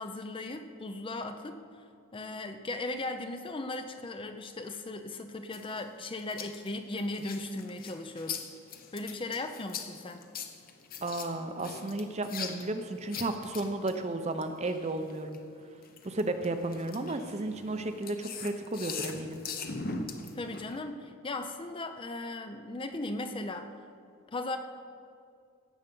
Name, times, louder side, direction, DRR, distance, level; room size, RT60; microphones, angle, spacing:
voice 1, 0.0-1.6 2.1-8.5 8.9-10.2 20.3-23.7 24.3-24.6, left 2 dB, 25° left, 7 dB, 0.5 m, -37 dB
sound 1, 5.5-15.4 15.8-20.8, left 5 dB, 40° left, 0.8 m, -41 dB
voice 2, 11.0-15.4 16.0-19.4, right 2 dB, 30° right, 8 dB, 0.6 m, -33 dB
16.5 x 7.1 x 5.4 m, 2.4 s
head